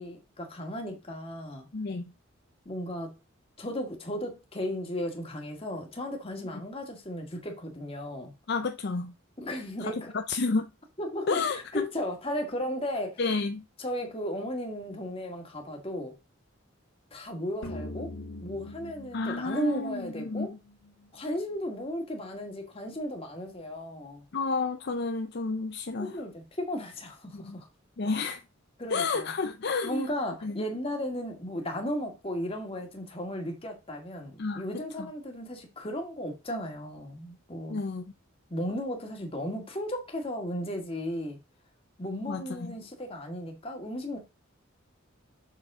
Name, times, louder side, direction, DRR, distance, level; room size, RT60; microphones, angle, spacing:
voice 1, 0.0-1.7 2.7-3.1 3.6-8.3 9.4-10.1 11.0-13.2 13.8-16.1 17.1-18.1 18.4-20.6 21.1-24.2 26.0-27.7 28.1-28.2 28.8-29.3 29.8-37.8 38.5-41.4 42.0-44.2, equal, 30° left, 1.9 m, -35 dB
voice 2, 1.7-2.1 8.5-9.1 9.8-10.7 11.3-11.9 13.2-13.6 19.1-20.5 24.3-26.2 27.3-27.6 28.0-28.4 28.9-30.1 30.4-30.6 34.4-35.1 37.7-38.1 42.3-42.8, left 4 dB, 55° left, 0.6 m, -31 dB
sound 1, 17.6-20.9, left 1 dB, 75° left, 2.4 m, -42 dB
7.3 x 6.6 x 3.7 m
head